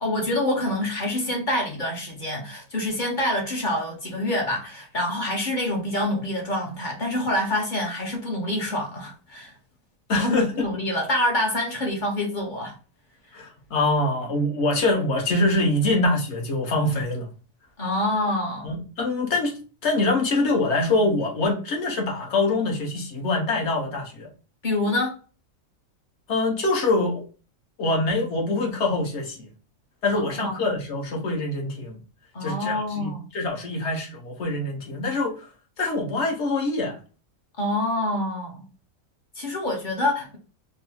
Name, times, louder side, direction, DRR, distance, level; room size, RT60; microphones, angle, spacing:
voice 1, 0.0-9.5 10.1-12.8 13.3-13.4 17.8-18.7 24.6-25.2 30.1-30.6 32.3-33.3 37.6-38.6 39.3-40.4, left 1 dB, 45° left, 0.8 m, -26 dB
voice 2, 10.1-10.7 13.3-17.3 18.6-24.3 26.3-27.2 27.8-29.5 30.0-32.0 32.4-35.5 35.8-37.0, left 2 dB, 60° left, 1.2 m, -24 dB
3.9 x 2.0 x 2.8 m
omnidirectional pair, 1.4 m